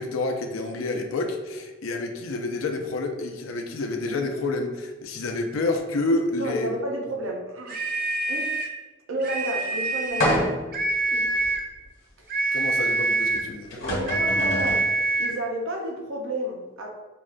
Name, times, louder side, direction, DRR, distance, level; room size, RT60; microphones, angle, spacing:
voice 1, 0.0-6.7 12.5-13.8, left 2 dB, 90° left, 4 dB, 0.4 m, -28 dB
voice 2, 6.4-7.8 8.3-8.5 9.1-10.5 11.1-11.5 13.7-16.9, right 1 dB, 85° right, 1 dB, 0.6 m, -31 dB
sound 1, 7.7-8.8 9.2-10.4 10.7-11.7 12.3-13.5 14.1-15.4, right 2 dB, 45° right, 0.3 m, -25 dB
sound 2, 10.2-10.8 11.4-11.5 13.3-13.4 13.7-14.9, left 1 dB, 70° left, 0.9 m, -26 dB
5.4 x 2.1 x 2.5 m, 1.2 s
head